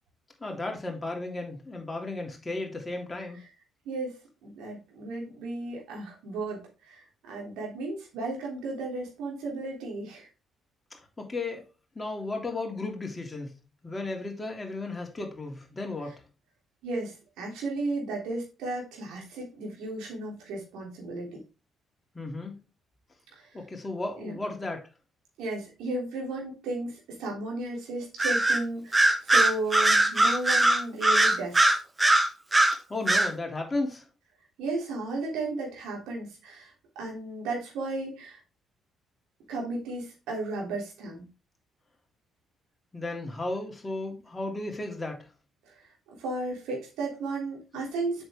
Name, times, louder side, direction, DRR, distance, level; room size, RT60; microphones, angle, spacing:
voice 1, 0.4-3.4 10.9-11.6 11.9-13.5 13.8-16.2 22.1-22.6 23.5-24.8 32.9-34.1 42.9-45.3, left 2 dB, 25° left, 3.1 m, -34 dB
voice 2, 3.9-7.0 7.3-10.3 16.8-21.4 23.3-23.4 24.2-24.3 25.4-31.8 34.6-38.4 39.5-41.3 45.7-45.8 46.2-48.3, right 2 dB, 70° right, 3.4 m, -34 dB
Bird vocalization bird call bird song, 28.2-28.6 28.9-32.8 33.1-33.3, right 2 dB, 20° right, 1.4 m, -21 dB
7.6 x 6.6 x 3.7 m
hypercardioid pair, 45°, 0 cm